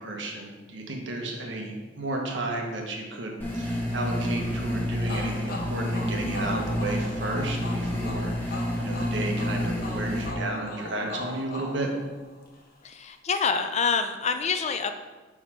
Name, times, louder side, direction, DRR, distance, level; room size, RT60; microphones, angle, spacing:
voice 1, 0.0-11.9, right 2 dB, 70° right, 1 dB, 1.2 m, -33 dB
sound 1, 3.4-10.3, left 1 dB, 10° left, 1.2 m, -29 dB
sound 2, 5.1-12.7, left 2 dB, 50° left, 1.0 m, -39 dB
voice 2, 12.8-15.0, left 5 dB, 35° left, 9 dB, 0.4 m, -27 dB
5.0 x 4.9 x 5.6 m, 1.3 s
head